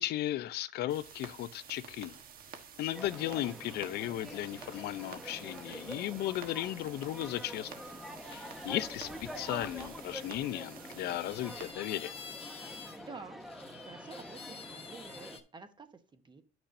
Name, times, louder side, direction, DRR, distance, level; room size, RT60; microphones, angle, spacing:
voice 1, 0.0-2.2 2.8-7.7 8.3-12.1, left 14 dB, 75° left, 0.6 m, -36 dB
sound 1, 0.9-11.7, right 7 dB, 60° right, 1.4 m, -51 dB
sound 2, 2.9-15.4, equal, ahead, 1.3 m, -46 dB
sound 3, 8.2-10.4 11.1-13.1 13.4-15.4, left 5 dB, 35° left, 1.1 m, -50 dB
voice 2, 13.0-13.4 13.8-16.4, right 4 dB, 25° right, 1.1 m, -50 dB
9.9 x 6.1 x 2.7 m
cardioid pair, 110°, 17 cm